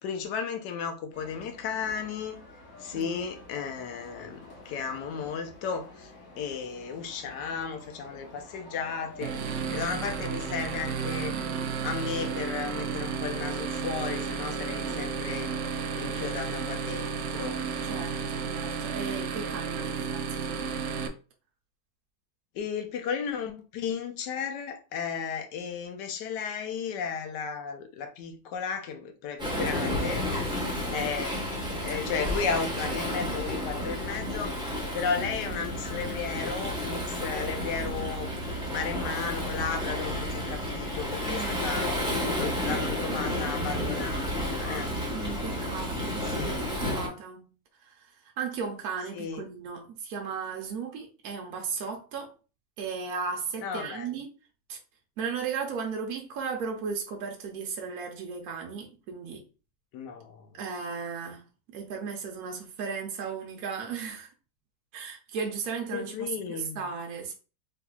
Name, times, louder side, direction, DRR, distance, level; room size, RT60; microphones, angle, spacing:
voice 1, 0.0-2.4 2.8-9.4 9.7-11.4 11.8-15.5 15.9-17.6 22.5-30.5 30.9-31.5 31.8-38.3 38.7-41.9 42.3-44.9 46.4-46.5 49.1-49.4 53.6-54.1 59.9-60.5 65.9-66.8, left 6 dB, 80° left, 1.3 m, -34 dB
sound 1, 1.1-18.8, left 2 dB, 55° left, 1.3 m, -49 dB
voice 2, 2.9-3.3 14.7-15.1 17.8-20.8 31.9-32.0 41.2-41.7 43.3-43.4 45.1-47.5 47.8-52.3 52.8-54.3 54.7-54.8 55.2-59.4 60.5-64.3 64.9-67.3, right 5 dB, 65° right, 1.1 m, -36 dB
sound 2, 9.2-21.1, right 6 dB, 90° right, 0.6 m, -32 dB
Waves surf, 29.4-47.1, left 1 dB, 5° right, 0.7 m, -31 dB
3.4 x 3.4 x 2.2 m
omnidirectional pair, 1.8 m